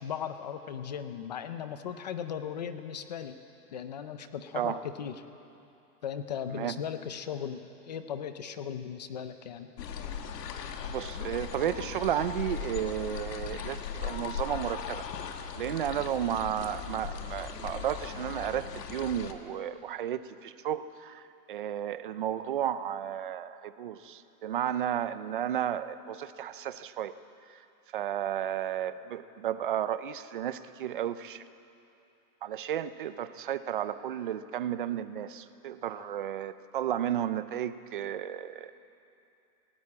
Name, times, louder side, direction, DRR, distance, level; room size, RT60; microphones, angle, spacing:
voice 1, 0.0-3.4 3.7-5.2 6.0-7.6 7.9-9.7 36.0-36.1, left 8 dB, 30° left, 9 dB, 0.5 m, -37 dB
sound 1, 9.8-19.3, left 7 dB, 80° left, 1.7 m, -38 dB
voice 2, 10.9-15.1 15.6-27.1 27.5-27.6 27.9-31.4 32.4-38.7, right 10 dB, 35° right, 13 dB, 0.4 m, -33 dB
17.5 x 17.0 x 8.6 m, 2.8 s
supercardioid pair, 165°, 48 cm